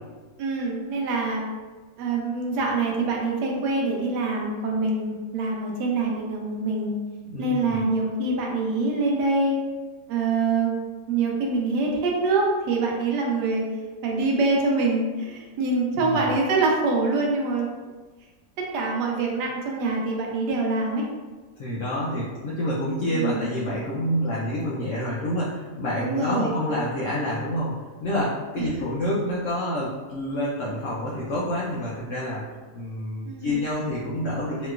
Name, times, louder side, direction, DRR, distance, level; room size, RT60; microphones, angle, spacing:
voice 1, 0.4-1.4 2.0-7.0 7.4-9.6 10.1-10.7 11.1-13.6 14.0-17.7 18.6-21.1 23.1-23.5 26.0-26.6 28.6-28.9 33.2-33.6, right 3 dB, 85° right, -1 dB, 1.2 m, -25 dB
voice 2, 7.3-7.9 15.9-16.3 21.6-34.7, left 1 dB, 75° left, -6 dB, 0.7 m, -28 dB
3.1 x 2.9 x 2.3 m, 1.3 s
omnidirectional pair, 1.8 m